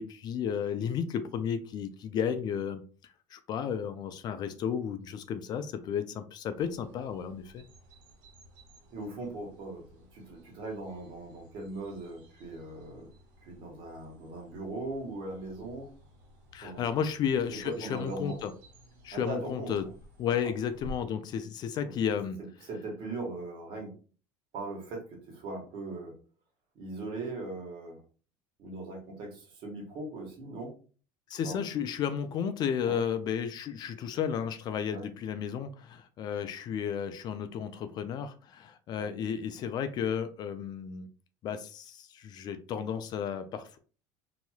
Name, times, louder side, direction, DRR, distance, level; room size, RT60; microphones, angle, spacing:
voice 1, 0.0-2.8 3.3-7.7 16.5-18.5 19.0-19.9 20.2-22.4 31.3-41.1 41.4-43.8, left 8 dB, 45° left, 10 dB, 0.4 m, -33 dB
sound 1, 6.5-21.0, right 1 dB, 80° right, 1.5 m, -54 dB
voice 2, 8.9-13.1 13.4-15.9 16.6-16.8 17.6-18.4 19.1-19.7 22.7-23.9 24.5-26.1 26.7-28.0 28.6-30.7 31.4-31.6 32.9-33.0 34.9-35.0 39.0-39.1, right 2 dB, 55° right, 0 dB, 1.4 m, -39 dB
3.0 x 2.8 x 2.3 m, 0.38 s
supercardioid pair, 110°, 10 cm